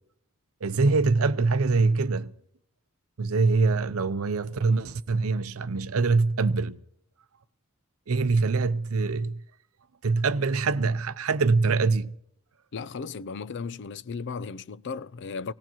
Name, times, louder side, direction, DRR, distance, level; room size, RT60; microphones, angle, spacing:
voice 1, 0.6-2.3 3.2-6.8 8.1-9.4 10.0-12.2, right 3 dB, 70° right, 0.6 m, -24 dB
voice 2, 12.7-15.5, left 5 dB, 55° left, 0.5 m, -35 dB
19.0 x 18.5 x 3.0 m
head